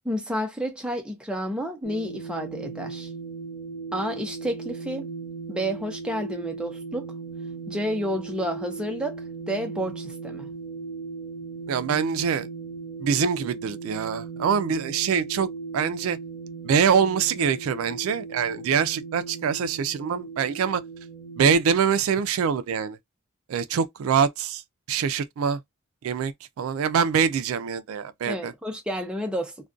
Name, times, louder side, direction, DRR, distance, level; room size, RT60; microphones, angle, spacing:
voice 1, 0.0-3.1 3.9-5.1 5.5-7.1 7.7-9.2 9.5-10.5 28.3-29.7, equal, 5° right, 0.5 m, -30 dB
sound 1, 1.8-21.6, right 4 dB, 90° left, 1.0 m, -37 dB
voice 2, 11.7-12.5 13.0-15.5 15.7-16.2 16.6-20.8 21.4-23.0 23.5-24.6 24.9-25.6 26.0-28.5, right 6 dB, 75° right, 0.3 m, -24 dB
2.4 x 2.2 x 2.4 m
head